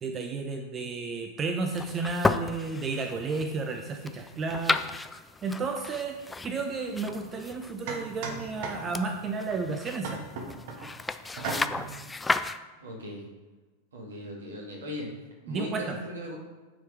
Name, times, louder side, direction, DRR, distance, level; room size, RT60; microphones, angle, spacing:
voice 1, 0.0-4.8 5.4-6.2 6.4-10.2 15.5-16.0, right 4 dB, 25° right, 4 dB, 0.7 m, -32 dB
sound 1, 1.7-12.6, left 3 dB, 10° left, 0.3 m, -34 dB
sound 2, 7.1-7.2 7.9-9.2 10.0-10.9 11.4-12.0, right 4 dB, 50° right, 1.1 m, -36 dB
voice 2, 12.8-13.3 13.9-15.1 15.4-16.4, left 1 dB, 65° right, -1 dB, 2.1 m, -38 dB
9.1 x 4.6 x 4.8 m, 1.3 s
figure-of-eight pair, 90°, 0 cm